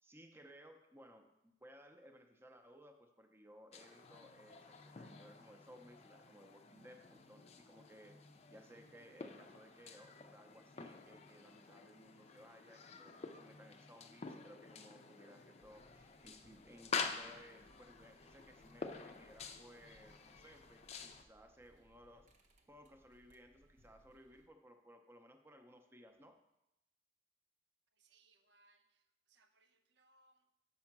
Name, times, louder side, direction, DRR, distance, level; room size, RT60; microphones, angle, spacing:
voice 1, 0.0-8.1 8.5-22.3 22.7-26.4, equal, 15° right, 5 dB, 0.6 m, -60 dB
sound 1, 3.7-21.2, left 5 dB, 40° left, 0.5 m, -49 dB
sound 2, 15.6-24.5, equal, 45° right, 0.8 m, -70 dB
voice 2, 28.0-29.0 29.3-30.4, right 3 dB, 90° right, 8 dB, 0.7 m, -71 dB
7.0 x 5.3 x 5.9 m, 0.88 s
head